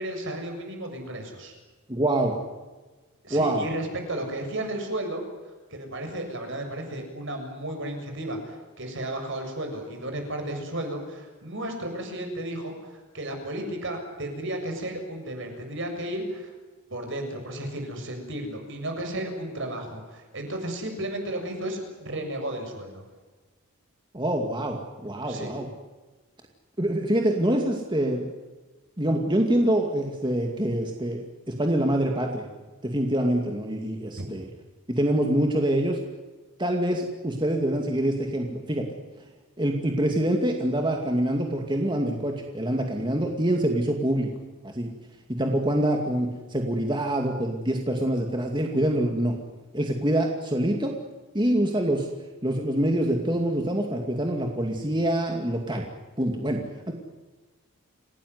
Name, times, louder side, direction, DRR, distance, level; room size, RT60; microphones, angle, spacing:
voice 1, 0.0-1.5 3.2-5.2 5.7-16.5 16.9-23.0 25.3-25.5 34.2-34.3, right 1 dB, 55° right, 4 dB, 7.2 m, -33 dB
voice 2, 1.9-2.4 3.3-3.6 24.1-25.7 26.8-28.3 29.0-32.5 32.8-34.5 34.9-36.0 36.6-38.9 39.6-44.3 44.6-44.9 45.3-49.4 49.7-50.9 51.3-52.1 52.4-55.9 56.2-56.9, right 1 dB, 20° right, 2 dB, 2.4 m, -25 dB
28.5 x 18.0 x 9.7 m, 1.2 s
head